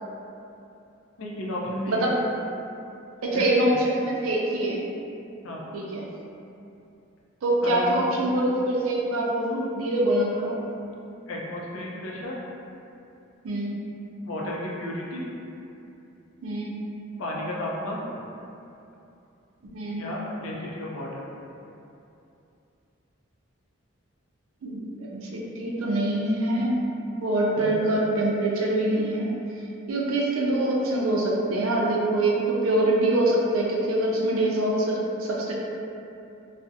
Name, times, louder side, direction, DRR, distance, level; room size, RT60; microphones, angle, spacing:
voice 1, 1.2-2.1 3.3-3.8 5.4-5.7 7.6-8.4 11.3-12.4 14.2-15.3 17.2-18.3 19.9-21.2 27.6-27.7, left 1 dB, 75° left, -3 dB, 0.4 m, -33 dB
voice 2, 3.2-4.8 5.7-6.0 7.4-10.6 13.4-13.7 16.4-16.7 19.7-20.1 24.6-26.7 27.2-29.3 29.9-35.5, right 1 dB, 80° right, -3 dB, 0.4 m, -24 dB
2.4 x 2.0 x 2.6 m, 2.7 s
head